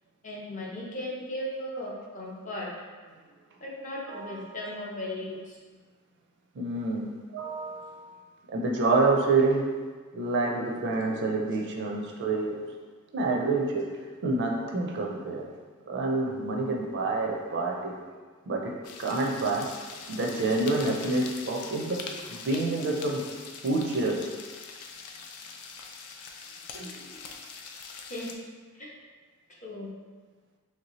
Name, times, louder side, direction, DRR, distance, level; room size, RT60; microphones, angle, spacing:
voice 1, 0.2-2.7 3.6-5.6 28.1-28.3 28.7-28.9 29.6-29.9, left 1 dB, 35° left, -4 dB, 0.7 m, -36 dB
voice 2, 4.1-4.6 6.6-8.0 8.5-9.7 10.1-12.7 13.1-15.5 15.9-18.0 18.5-19.7 20.1-23.3 23.6-24.3 26.7-27.1, right 3 dB, 50° right, 0 dB, 0.4 m, -28 dB
sound 1, 18.8-28.3, left 5 dB, 85° left, 0.4 m, -43 dB
3.2 x 2.7 x 2.9 m, 1.5 s
head